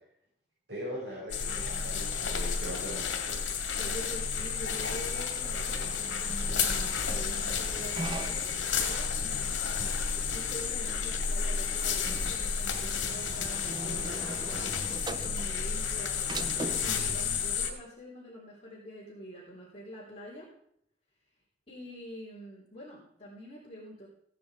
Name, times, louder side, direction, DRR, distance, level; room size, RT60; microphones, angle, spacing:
voice 1, 0.7-3.2, equal, 65° right, -7 dB, 6.4 m, -40 dB
sound 1, 1.3-17.7, left 6 dB, 75° left, 2.3 m, -32 dB
voice 2, 3.7-16.3 16.8-20.5 21.7-24.1, equal, 30° left, -8 dB, 3.4 m, -45 dB
sound 2, 5.8-17.0, right 2 dB, 25° right, 0.5 m, -42 dB
16.0 x 9.3 x 4.9 m, 0.72 s
head